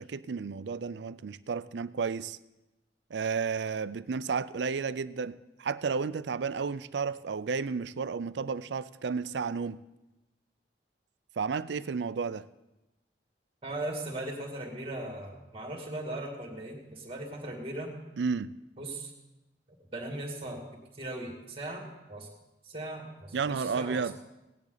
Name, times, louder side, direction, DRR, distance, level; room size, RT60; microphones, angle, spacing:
voice 1, 0.0-2.4 3.1-9.8 11.4-12.5 18.2-18.5 23.3-24.2, right 5 dB, 80° right, 0.4 m, -32 dB
voice 2, 13.6-17.9 18.8-19.1 19.9-20.7 21.0-22.3 22.6-24.1, right 1 dB, 30° right, 2.4 m, -38 dB
17.5 x 10.5 x 4.0 m
head